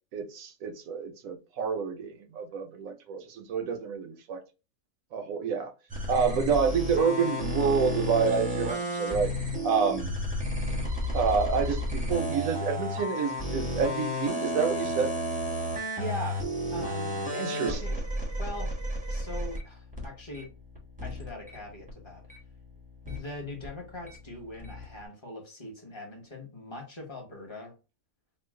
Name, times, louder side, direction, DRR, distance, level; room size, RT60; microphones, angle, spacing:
voice 1, 0.1-4.4 5.1-5.7 6.1-9.3 9.6-10.2 11.1-15.1 17.3-18.0, right 6 dB, 70° right, 1.0 m, -28 dB
sound 1, 5.9-21.6 21.8-24.2 24.5-25.0, equal, 5° right, 0.9 m, -32 dB
voice 2, 16.0-16.4 16.7-17.9 18.4-18.7 19.1-20.5 21.0-22.2 23.0-27.8, left 1 dB, 20° left, 1.1 m, -41 dB
3.1 x 2.4 x 3.5 m
omnidirectional pair, 1.6 m